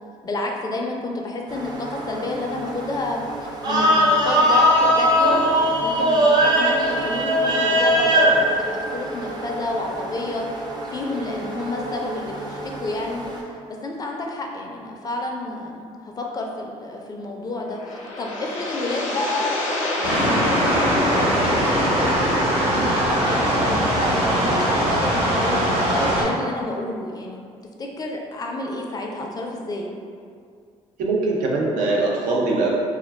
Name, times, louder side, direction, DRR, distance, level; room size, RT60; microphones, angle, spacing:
voice 1, 0.2-3.2 3.6-10.6 10.9-13.2 13.8-19.7 20.0-22.4 22.7-27.4 27.8-29.9, left 2 dB, 30° left, 0 dB, 0.4 m, -30 dB
sound 1, 1.5-13.4, equal, 35° right, 0.5 m, -22 dB
sound 2, 17.5-22.6, left 1 dB, 70° left, 0.6 m, -27 dB
sound 3, 20.0-26.2, right 1 dB, 50° right, 1.0 m, -21 dB
voice 2, 31.0-32.7, right 3 dB, 80° right, -2 dB, 0.5 m, -22 dB
2.2 x 2.2 x 3.3 m, 2.2 s
cardioid pair, 85°, 13 cm